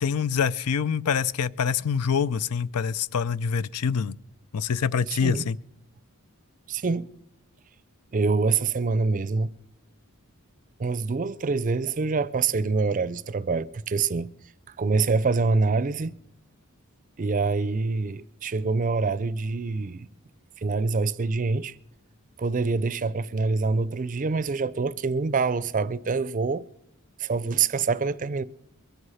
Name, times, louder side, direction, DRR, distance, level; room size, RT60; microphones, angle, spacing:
voice 1, 0.0-4.2 4.5-5.6, left 6 dB, 85° left, 0.5 m, -25 dB
voice 2, 5.1-5.4 6.7-7.1 8.1-9.5 10.8-14.3 14.8-16.2 17.2-20.1 20.6-21.8 22.4-26.6 27.2-28.4, right 4 dB, 35° right, 0.5 m, -25 dB
22.5 x 8.1 x 5.6 m
head